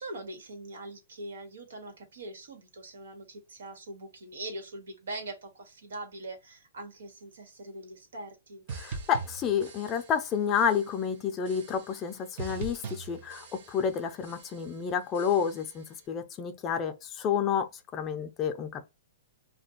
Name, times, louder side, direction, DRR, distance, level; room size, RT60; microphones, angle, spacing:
voice 1, 0.0-8.6, right 2 dB, 85° right, 1.4 m, -42 dB
voice 2, 8.7-18.9, left 7 dB, 20° left, 0.5 m, -30 dB
sound 1, 8.7-10.3 10.5-11.0 11.5-12.1 12.4-14.0 14.2-14.7 15.1-15.8, right 4 dB, 45° right, 0.7 m, -42 dB
2.5 x 2.2 x 3.8 m
hypercardioid pair, 155°, 0 cm